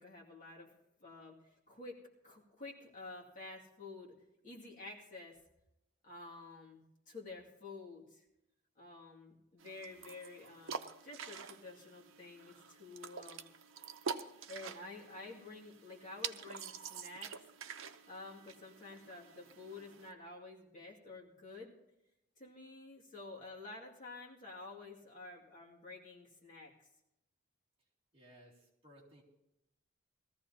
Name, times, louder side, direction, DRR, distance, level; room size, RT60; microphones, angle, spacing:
voice 1, 0.0-2.0 2.2-4.1 4.4-5.4 6.0-8.3 8.8-13.5 14.5-17.4 18.0-21.7 22.4-26.9, left 3 dB, 40° left, -2 dB, 2.3 m, -50 dB
sound 1, 9.6-20.1, right 6 dB, 80° right, 0.7 m, -47 dB
voice 2, 28.1-29.2, equal, 30° right, -4 dB, 2.5 m, -60 dB
20.0 x 14.5 x 2.8 m, 0.87 s
head